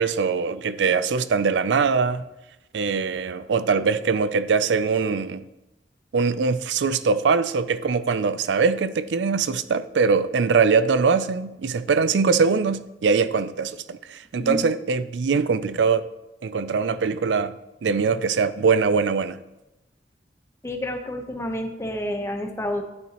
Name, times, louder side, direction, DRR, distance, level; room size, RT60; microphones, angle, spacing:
voice 1, 0.0-2.2 2.7-5.4 6.1-16.1 16.4-17.5 17.8-19.4, right 5 dB, 85° right, 0.4 m, -22 dB
voice 2, 14.4-14.7 20.6-22.8, left 1 dB, 15° left, 0.9 m, -29 dB
11.0 x 8.7 x 3.0 m
head